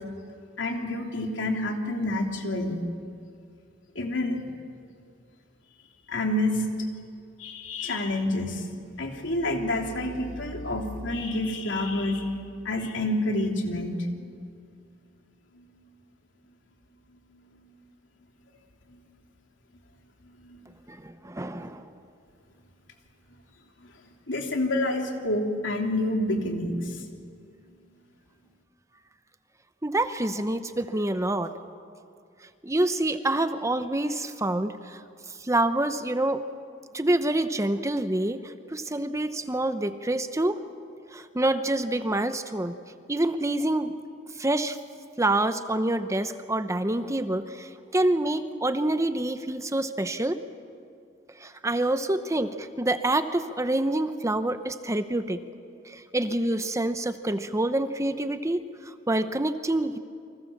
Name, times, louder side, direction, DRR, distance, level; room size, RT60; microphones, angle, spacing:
voice 1, 0.6-2.8 3.9-4.5 6.1-6.9 7.4-8.7 9.0-12.3 12.6-14.1 15.5-15.7 17.3-17.4 18.9-19.0 20.2-20.6 23.8-23.9 24.3-27.0, left 1 dB, 85° left, 2 dB, 3.3 m, -28 dB
voice 2, 20.9-21.9 29.8-31.5 32.6-35.0 35.4-36.4 36.9-40.6 41.1-42.8 43.1-43.9 44.4-44.8 45.2-50.4 51.4-55.4 55.9-60.0, right 1 dB, 15° right, 10 dB, 0.9 m, -27 dB
30.0 x 24.0 x 7.3 m, 2.4 s
head